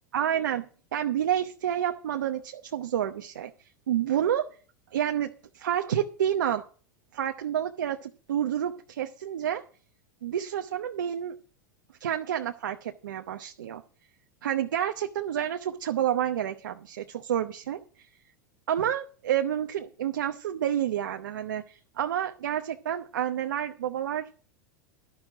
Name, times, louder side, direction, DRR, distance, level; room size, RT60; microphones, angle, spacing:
voice 1, 0.1-3.5 3.9-4.5 4.9-6.6 7.1-9.6 10.2-11.3 12.0-13.8 14.4-18.1 18.7-24.3, right 10 dB, 80° right, 5 dB, 0.9 m, -29 dB
12.0 x 6.2 x 7.6 m, 0.41 s
hypercardioid pair, 100°, 10 cm